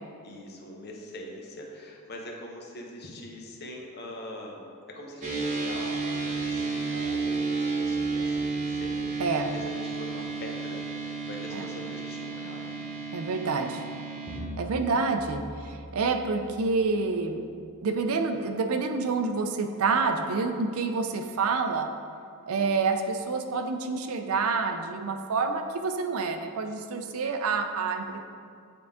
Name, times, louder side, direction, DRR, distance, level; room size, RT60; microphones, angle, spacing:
voice 1, 0.2-12.8 28.0-28.2, left 1 dB, 50° left, 0 dB, 0.9 m, -43 dB
sound 1, 5.2-14.4, right 4 dB, 35° right, 1.0 m, -31 dB
voice 2, 13.1-13.8 14.6-17.4 17.8-21.9 22.5-28.2, right 4 dB, 70° right, 6 dB, 0.5 m, -28 dB
sound 2, 14.3-17.0, right 1 dB, 5° left, 1.1 m, -42 dB
8.6 x 3.8 x 3.6 m, 2.3 s
head